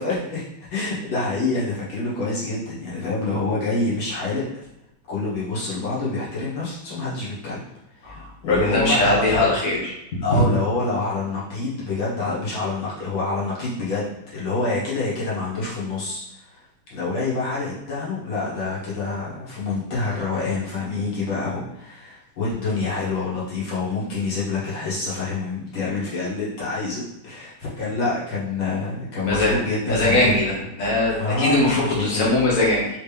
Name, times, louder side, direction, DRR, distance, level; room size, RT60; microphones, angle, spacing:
voice 1, 0.0-4.4 5.1-7.6 8.0-9.4 10.2-16.2 16.5-16.6 16.9-30.4 31.2-32.3, left 3 dB, 80° left, -8 dB, 2.3 m, -27 dB
voice 2, 8.5-10.4 29.2-29.6 29.9-32.9, left 1 dB, 50° left, -5 dB, 1.5 m, -21 dB
4.4 x 3.3 x 3.3 m, 0.85 s
omnidirectional pair, 2.1 m